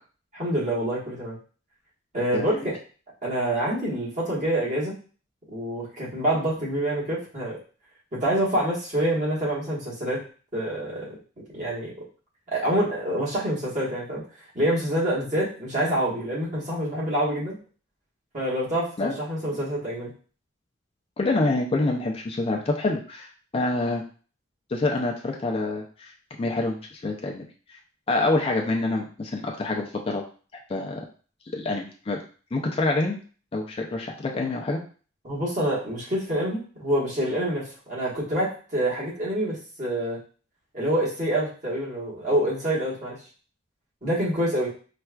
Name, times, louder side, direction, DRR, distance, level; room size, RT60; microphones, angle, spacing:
voice 1, 0.3-1.4 2.1-2.8 3.2-4.9 5.5-7.6 8.1-10.2 10.5-11.1 11.5-11.9 12.5-14.2 14.5-17.6 18.3-20.1 35.2-40.2 40.7-43.2 44.0-44.7, right 1 dB, 40° right, -7 dB, 1.4 m, -26 dB
voice 2, 21.2-24.0 24.7-26.1 26.4-27.4 28.1-30.2 30.7-31.0 31.5-32.2 32.5-33.2 33.5-34.8, left 2 dB, 30° left, 1 dB, 0.4 m, -26 dB
4.3 x 2.4 x 2.3 m, 0.40 s
head